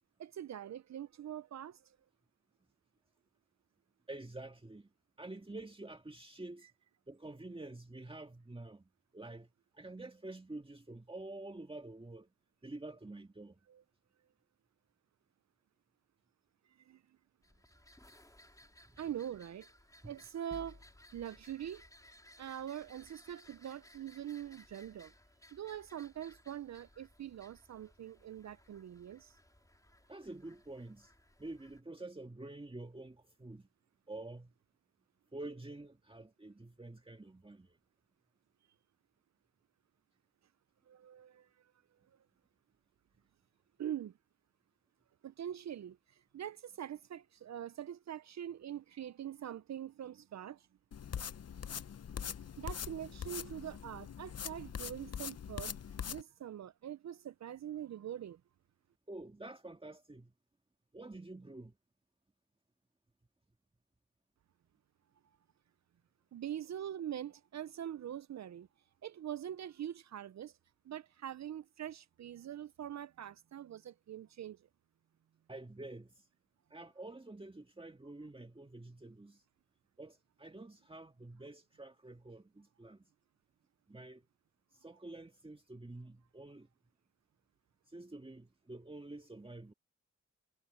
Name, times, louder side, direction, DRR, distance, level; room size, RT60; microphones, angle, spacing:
voice 1, 0.2-2.0 13.7-13.8 16.8-17.0 19.0-19.7 20.1-20.8 21.1-21.8 22.4-25.1 25.5-29.4 40.9-41.7 43.8-44.2 45.2-50.7 52.6-55.8 56.1-58.4 66.3-68.7 69.0-70.6 70.8-74.7, right 10 dB, 65° right, 0.5 m, -44 dB
voice 2, 4.1-4.9 5.2-6.7 7.1-12.3 12.6-13.6 20.0-20.1 30.1-31.1 31.4-33.7 34.1-34.5 35.3-37.8 59.1-60.3 60.9-61.8 75.5-76.3 76.7-79.4 80.0-83.0 83.9-84.2 84.7-86.7 87.9-89.7, right 2 dB, 20° right, 1.8 m, -48 dB
sound 1, 17.4-31.8, left 1 dB, 10° left, 4.1 m, -62 dB
sound 2, 20.5-21.5, left 3 dB, 35° left, 4.3 m, -54 dB
sound 3, 50.9-56.2, left 8 dB, 55° left, 0.8 m, -43 dB
cardioid pair, 55°, 30 cm